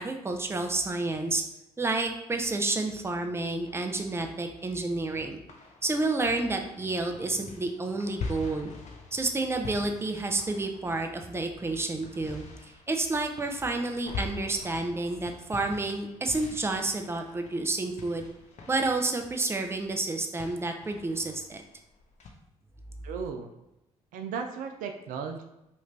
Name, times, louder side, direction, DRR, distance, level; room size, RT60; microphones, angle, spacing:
voice 1, 0.0-1.4 1.8-5.4 5.8-8.7 9.1-12.4 12.9-18.3 18.7-21.6, right 2 dB, 15° right, 5 dB, 0.5 m, -30 dB
sound 1, 3.7-5.1 5.5-22.3, left 4 dB, 50° left, 0.7 m, -44 dB
voice 2, 23.0-23.5 24.1-25.4, right 6 dB, 65° right, 5 dB, 0.4 m, -35 dB
3.1 x 2.5 x 3.1 m, 0.90 s
hypercardioid pair, 50°, 15 cm